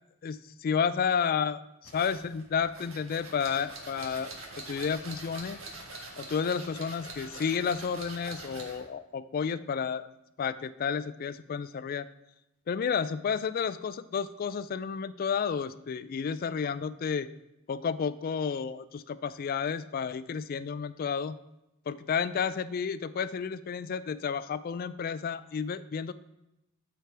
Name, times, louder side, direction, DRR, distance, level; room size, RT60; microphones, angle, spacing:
voice 1, 0.2-4.3 4.7-5.6 6.2-10.1 10.4-12.1 12.7-17.3 17.7-21.3 21.9-26.1, left 6 dB, 45° left, 14 dB, 0.3 m, -31 dB
sound 1, 1.8-8.9, right 2 dB, 65° right, 1.7 m, -44 dB
13.0 x 4.5 x 3.4 m, 0.89 s
head